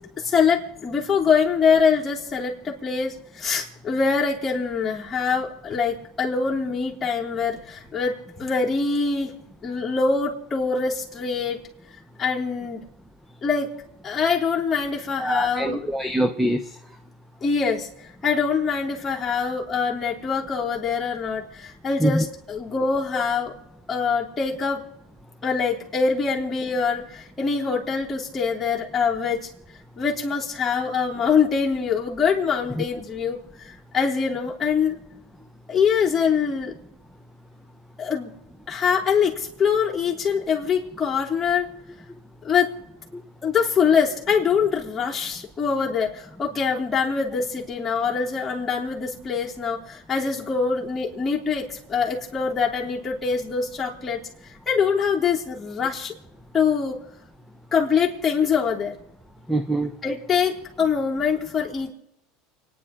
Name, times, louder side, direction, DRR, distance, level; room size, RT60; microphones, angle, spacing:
voice 1, 0.2-9.4 9.6-11.6 12.2-12.8 13.4-13.7 14.0-15.9 17.4-17.9 18.2-23.5 23.9-24.8 25.4-29.5 30.0-35.0 35.7-36.7 38.0-38.3 38.7-41.7 42.4-42.7 43.4-54.2 54.7-56.1 56.5-57.0 57.7-58.9 60.0-61.9, left 6 dB, 15° left, -4 dB, 3.4 m, -24 dB
voice 2, 15.2-16.6 22.0-22.2 32.8-32.9 59.5-59.9, right 1 dB, 5° right, 7 dB, 0.8 m, -23 dB
29.5 x 10.0 x 3.8 m, 0.83 s
supercardioid pair, 135°, 0 cm